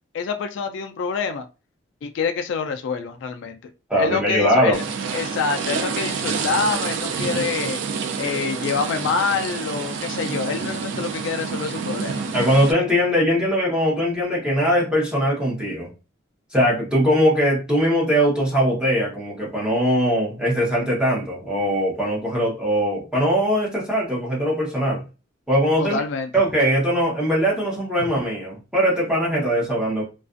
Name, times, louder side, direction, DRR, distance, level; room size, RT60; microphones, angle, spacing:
voice 1, 0.1-1.4 2.0-3.6 4.0-4.8 5.1-7.8 8.2-12.2 25.8-26.3 28.0-28.1, left 5 dB, 70° left, 0.3 m, -26 dB
voice 2, 3.9-4.8 12.3-15.9 16.5-25.0 25.5-26.0 26.3-30.0, equal, 5° right, 0.8 m, -21 dB
sound 1, 4.7-12.7, right 5 dB, 70° right, 0.3 m, -28 dB
2.4 x 2.3 x 2.4 m
head